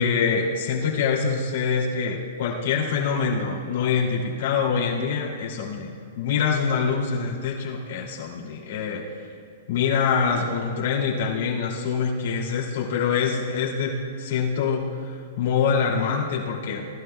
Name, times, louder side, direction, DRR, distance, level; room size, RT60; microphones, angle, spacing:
voice 1, 0.0-9.0 9.7-16.9, left 6 dB, 70° left, -3 dB, 2.5 m, -25 dB
20.5 x 11.0 x 2.3 m, 2.2 s
hypercardioid pair, 140°, 0 cm